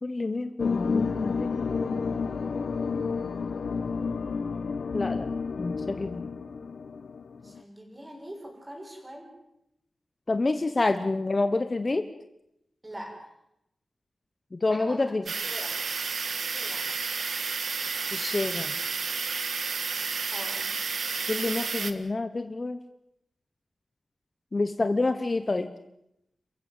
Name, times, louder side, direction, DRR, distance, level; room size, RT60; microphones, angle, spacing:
voice 1, 0.0-2.0 4.9-5.3 5.6-6.3 10.3-12.1 14.5-15.2 18.1-18.7 21.3-22.8 24.5-25.7, left 3 dB, 35° left, 10 dB, 1.0 m, -28 dB
sound 1, 0.6-7.6, left 5 dB, 80° left, 1.0 m, -30 dB
voice 2, 7.4-9.3 10.7-10.8 12.8-13.3 14.7-15.7 16.4-16.9 20.3-20.7, equal, 20° right, 0 dB, 6.8 m, -43 dB
sound 2, 15.3-21.9, right 5 dB, 70° right, 1.5 m, -31 dB
28.5 x 15.5 x 7.9 m, 0.81 s
wide cardioid pair, 115°, 0 cm